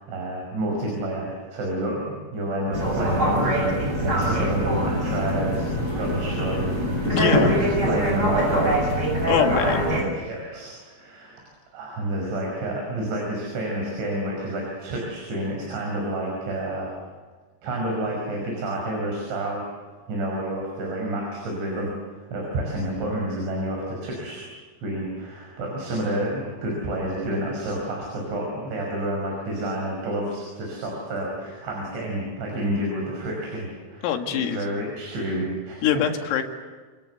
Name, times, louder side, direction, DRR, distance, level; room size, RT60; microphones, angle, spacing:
voice 1, 0.0-5.7 6.0-11.4 11.7-16.9 17.6-24.4 24.8-35.9, right 1 dB, 65° right, 0 dB, 7.7 m, -29 dB
sound 1, 2.7-10.0, equal, 15° right, 7.9 m, -24 dB
voice 2, 7.1-7.6 9.3-9.8 34.0-34.6 35.8-36.4, left 8 dB, 85° left, 5 dB, 4.6 m, -23 dB
28.5 x 26.0 x 8.1 m, 1.4 s
omnidirectional pair, 5.8 m